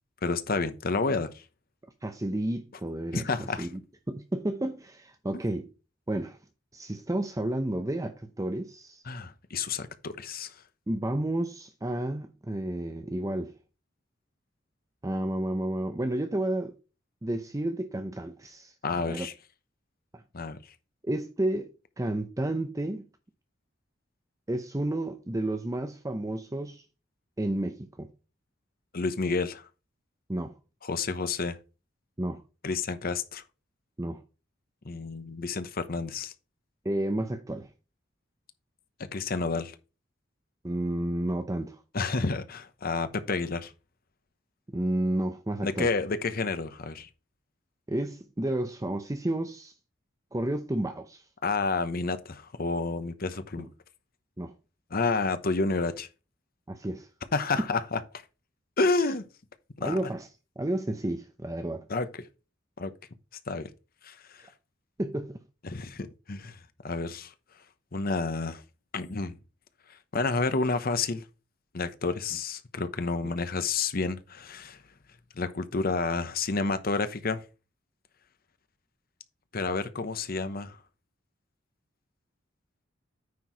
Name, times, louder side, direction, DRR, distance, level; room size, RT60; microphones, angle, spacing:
voice 1, 0.2-1.4 3.1-3.7 9.1-10.5 18.8-19.3 20.3-20.6 28.9-29.6 30.8-31.6 32.6-33.4 34.8-36.3 39.1-39.7 41.9-43.7 45.6-47.1 51.4-53.7 54.9-56.1 57.3-58.0 58.8-59.2 59.8-60.1 61.9-62.2 62.8-62.9 63.5-63.7 64.0-64.4 65.6-66.6 66.8-67.3 67.9-68.6 68.9-69.4 70.1-71.2 71.7-74.8 75.4-77.4 79.5-80.8, left 3 dB, 50° left, 0.9 m, -30 dB
voice 2, 2.0-3.8 4.1-5.7 6.1-6.4 6.7-9.0 10.9-13.5 15.0-16.7 17.2-19.3 21.0-23.0 24.5-26.8 27.4-28.1 30.3-30.5 32.2-32.4 34.0-34.2 36.8-37.7 40.6-41.8 44.7-45.9 47.9-49.7 50.3-51.2 54.4-54.5 56.7-57.1 59.8-60.3 60.6-61.8 65.0-65.4, right 1 dB, 15° right, 0.7 m, -31 dB
9.5 x 4.6 x 4.6 m
head